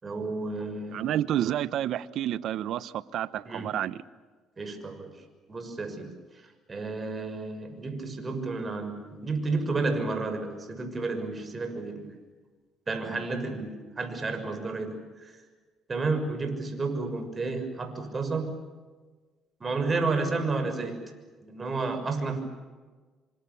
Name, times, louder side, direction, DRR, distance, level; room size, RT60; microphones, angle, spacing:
voice 1, 0.0-1.1 3.5-3.7 4.6-5.1 5.5-6.1 6.7-12.2 12.9-15.4 15.9-18.6 19.6-21.0 21.4-22.4, right 3 dB, 30° right, 7 dB, 6.4 m, -31 dB
voice 2, 0.9-4.0, right 11 dB, 65° right, 16 dB, 1.0 m, -29 dB
26.5 x 26.0 x 7.1 m, 1.4 s
supercardioid pair, 80°, 0 cm